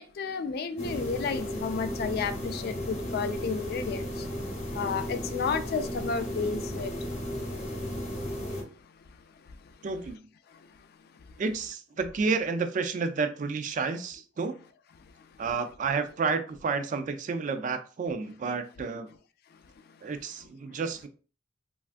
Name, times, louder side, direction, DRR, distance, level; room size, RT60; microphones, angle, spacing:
voice 1, 0.2-4.0 4.8-6.9, left 5 dB, 55° left, 0.3 m, -31 dB
sound 1, 0.8-8.6, equal, 35° left, 0.8 m, -35 dB
voice 2, 9.8-10.2 11.4-14.5 15.4-19.1 20.0-21.1, right 4 dB, 40° right, 0.3 m, -30 dB
3.2 x 2.4 x 2.4 m
head